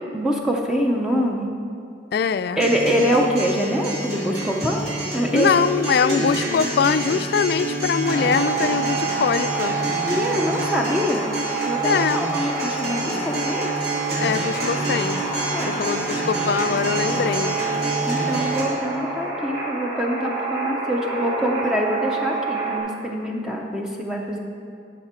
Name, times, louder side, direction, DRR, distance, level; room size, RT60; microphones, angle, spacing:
voice 1, 0.1-1.5 2.6-4.9 5.1-5.5 6.0-6.4 10.1-11.3 11.7-13.7 15.5-15.8 18.1-24.4, equal, 5° right, 0 dB, 0.6 m, -24 dB
voice 2, 2.1-2.6 5.3-9.8 11.8-12.2 14.2-15.2 15.7-17.6, left 6 dB, 60° left, 13 dB, 0.3 m, -22 dB
Acoustic guitar, 2.6-18.6, right 1 dB, 60° right, 2.3 m, -28 dB
sound 1, 8.0-22.8, right 4 dB, 20° right, 2.6 m, -28 dB
12.5 x 5.9 x 4.3 m, 2.4 s
head